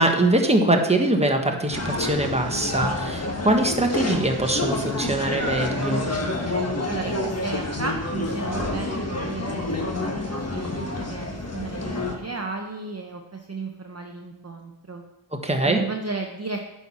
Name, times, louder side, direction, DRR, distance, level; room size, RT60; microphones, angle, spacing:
voice 1, 0.0-6.1 15.3-15.8, right 1 dB, 15° right, 3 dB, 1.2 m, -22 dB
sound 1, 1.7-12.1, left 2 dB, 30° left, 1.4 m, -28 dB
voice 2, 6.9-9.0 9.3-15.0 15.6-16.6, right 3 dB, 30° right, 3 dB, 0.8 m, -34 dB
9.1 x 4.6 x 5.6 m, 0.91 s
wide cardioid pair, 50°, 48 cm